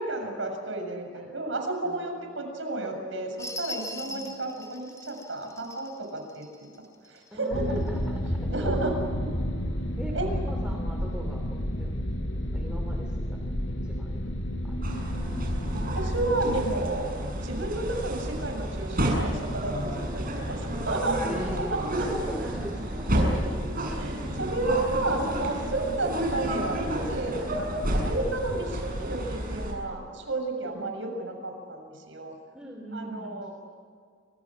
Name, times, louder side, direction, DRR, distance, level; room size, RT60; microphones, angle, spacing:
voice 1, 0.0-6.5 7.1-7.8 8.5-9.4 10.1-10.3 16.0-17.1 17.4-21.2 21.6-22.3 22.9-32.3 32.9-33.5, right 2 dB, 75° right, 4 dB, 7.3 m, -32 dB
voice 2, 1.8-2.3 4.1-4.4 7.3-9.1 10.0-11.9 12.3-13.4 13.7-14.2 14.6-15.2 21.2-21.8 22.1-23.1 27.3-27.6 30.6-30.8 32.5-33.5, right 1 dB, 5° right, 1 dB, 2.9 m, -40 dB
sound 1, 3.4-7.3 7.9-8.0, left 1 dB, 15° left, 4.1 m, -41 dB
sound 2, 7.5-16.7, equal, 80° left, 4.6 m, -31 dB
sound 3, 14.8-29.7, equal, 50° right, 7.4 m, -31 dB
29.5 x 27.0 x 6.3 m, 2.1 s
head